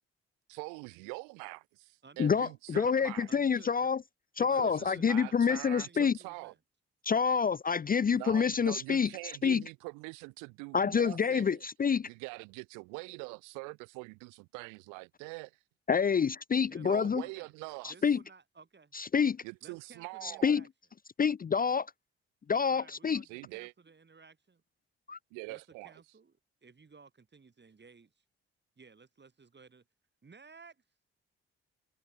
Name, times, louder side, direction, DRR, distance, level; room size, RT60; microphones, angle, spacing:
voice 1, 0.5-3.3 4.5-6.5 8.1-11.6 12.1-15.5 16.8-17.9 19.4-20.6 23.2-23.7 25.3-25.9, right 32 dB, 70° right, 1.3 m, -44 dB
voice 2, 2.2-4.0 4.4-6.2 7.0-9.1 9.4-9.6 10.7-12.1 15.9-17.2 17.8-18.2 18.9-19.4 20.2-20.6 21.2-21.9 22.5-23.2 25.1-25.2, left 6 dB, 25° left, 0.7 m, -27 dB
voice 3, 3.3-3.9 4.5-6.6 16.5-17.6 17.8-18.9 19.6-20.7 22.7-24.6 25.5-28.2 28.8-29.9 30.2-30.8, right 4 dB, 35° right, 6.6 m, -57 dB
figure-of-eight pair, 40°, 32 cm